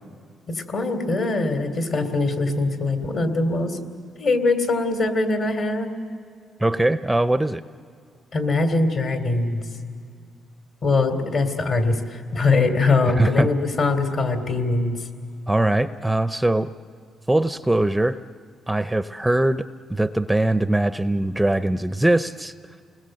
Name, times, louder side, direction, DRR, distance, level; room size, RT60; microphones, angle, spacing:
voice 1, 0.5-3.8 4.2-5.9 8.3-9.6 10.8-15.0, left 3 dB, 55° left, 6 dB, 3.0 m, -22 dB
voice 2, 6.6-7.6 13.2-13.5 15.5-16.7 17.3-18.2 18.7-19.6 19.9-22.5, right 1 dB, 5° right, 12 dB, 0.6 m, -21 dB
29.5 x 20.5 x 7.8 m, 2.2 s
cardioid pair, 90°, 0 cm